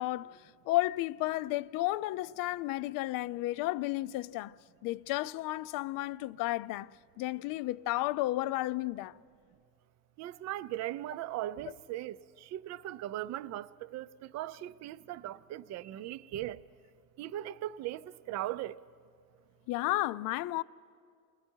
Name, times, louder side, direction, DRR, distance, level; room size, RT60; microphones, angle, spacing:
voice 1, 0.0-9.2 19.7-20.6, left 17 dB, 70° left, 0.5 m, -33 dB
voice 2, 10.2-16.6 17.2-18.8, right 13 dB, 50° right, 0.5 m, -39 dB
29.0 x 20.5 x 4.5 m
cardioid pair, 140°, 34 cm